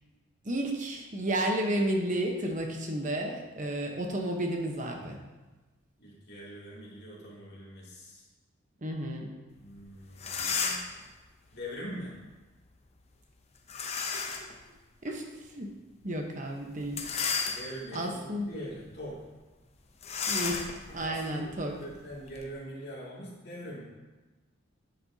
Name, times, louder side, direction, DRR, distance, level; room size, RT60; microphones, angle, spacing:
voice 1, 0.4-5.2 8.8-9.3 15.0-15.2 15.6-15.7 16.0-17.0 17.9-18.5 20.3-20.6 20.9-21.7, right 1 dB, 35° right, 2 dB, 1.0 m, -32 dB
voice 2, 6.0-8.2 9.6-10.8 11.5-12.1 17.5-19.2 21.1-21.5 21.8-23.9, equal, 50° left, -6 dB, 2.6 m, -43 dB
sound 1, 9.8-9.9 10.1-11.0 13.7-14.5 15.1-15.2 16.8-18.0 18.5-18.7 19.0-19.1 20.0-22.5, left 5 dB, 30° left, 0.7 m, -33 dB
10.0 x 7.7 x 2.8 m, 1.2 s
head